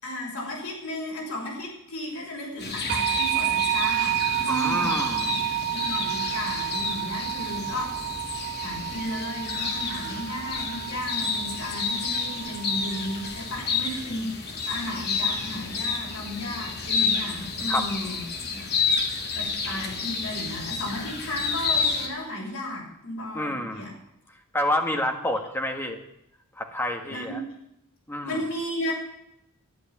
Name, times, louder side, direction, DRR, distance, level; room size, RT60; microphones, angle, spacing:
voice 1, 0.0-8.0 8.6-18.2 18.5-18.6 19.3-23.9 27.1-27.4 28.2-28.9, left 1 dB, 85° left, -2 dB, 6.2 m, -34 dB
sound 1, 2.6-22.1, left 5 dB, 45° left, 2.1 m, -30 dB
sound 2, 2.9-13.5, right 13 dB, 50° right, 1.2 m, -30 dB
voice 2, 4.5-5.3 17.7-17.9 23.3-23.9 24.5-26.0 26.6-27.4 28.1-28.4, left 1 dB, 10° left, 3 dB, 1.6 m, -28 dB
12.5 x 11.0 x 7.3 m, 0.78 s
head